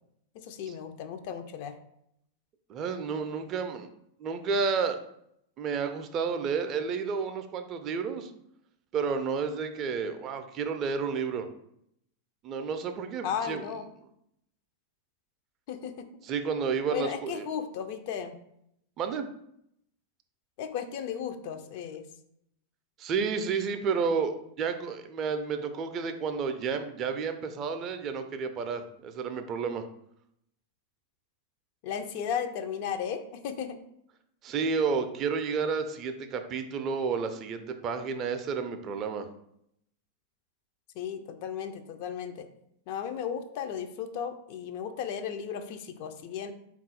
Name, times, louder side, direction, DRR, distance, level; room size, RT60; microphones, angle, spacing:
voice 1, 0.3-1.8 13.2-13.9 15.7-16.1 16.9-18.4 20.6-22.0 31.8-33.8 41.0-42.5 42.9-46.5, left 8 dB, 45° left, 8 dB, 0.3 m, -35 dB
voice 2, 2.7-3.9 4.2-5.0 5.6-8.3 8.9-11.5 12.4-13.6 16.2-17.5 19.0-19.2 23.0-29.8 34.4-39.3, right 5 dB, 35° right, 8 dB, 0.4 m, -31 dB
3.6 x 2.4 x 4.0 m, 0.75 s
figure-of-eight pair, 90°, 0 cm